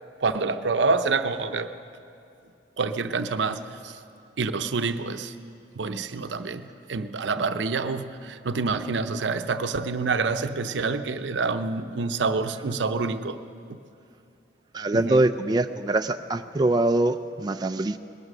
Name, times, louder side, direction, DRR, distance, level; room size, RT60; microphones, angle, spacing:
voice 1, 0.2-1.7 2.8-3.9 4.4-5.3 5.7-6.6 6.9-13.4 14.9-15.2, right 4 dB, 85° right, 10 dB, 0.6 m, -27 dB
voice 2, 14.7-18.0, right 2 dB, 25° right, 8 dB, 0.3 m, -23 dB
19.5 x 11.0 x 6.6 m, 2.6 s
head